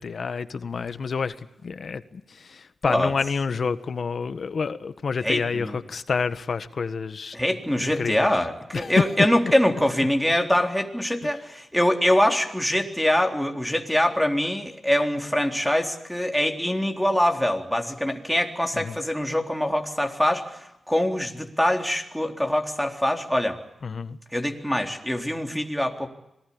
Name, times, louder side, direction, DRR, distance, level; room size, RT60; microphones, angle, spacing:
voice 1, 0.0-7.4 7.8-8.4 8.7-9.1 18.7-19.0 23.8-24.2, left 5 dB, 65° left, 12 dB, 1.4 m, -28 dB
voice 2, 5.2-5.8 7.3-23.6 24.3-26.1, left 1 dB, ahead, 3 dB, 3.7 m, -24 dB
26.0 x 19.5 x 8.6 m, 0.86 s
cardioid pair, 70°, 0 cm